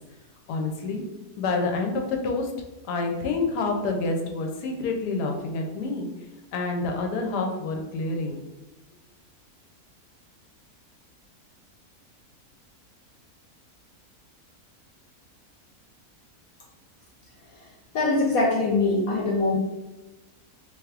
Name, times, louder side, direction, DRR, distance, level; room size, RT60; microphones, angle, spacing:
voice 1, 0.5-1.0 1.4-2.5 2.9-6.1 6.5-8.4, left 3 dB, 90° left, 3 dB, 1.1 m, -28 dB
voice 2, 17.9-19.6, left 2 dB, 70° left, -3 dB, 1.0 m, -22 dB
3.3 x 2.9 x 2.4 m, 1.1 s
omnidirectional pair, 1.7 m